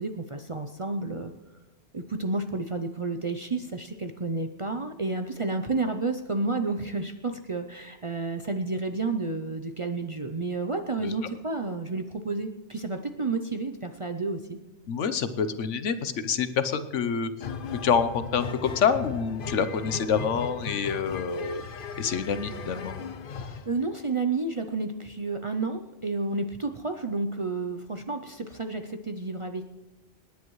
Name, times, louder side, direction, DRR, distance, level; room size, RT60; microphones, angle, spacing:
voice 1, 0.0-1.3 1.9-14.6 23.5-29.7, right 3 dB, 40° right, 6 dB, 0.5 m, -31 dB
voice 2, 14.9-17.5 17.8-21.6 22.0-23.0, left 6 dB, 85° left, 11 dB, 1.2 m, -27 dB
sound 1, 17.4-23.7, left 5 dB, 50° left, 0.8 m, -37 dB
27.0 x 10.5 x 3.1 m, 1.1 s
omnidirectional pair, 1.2 m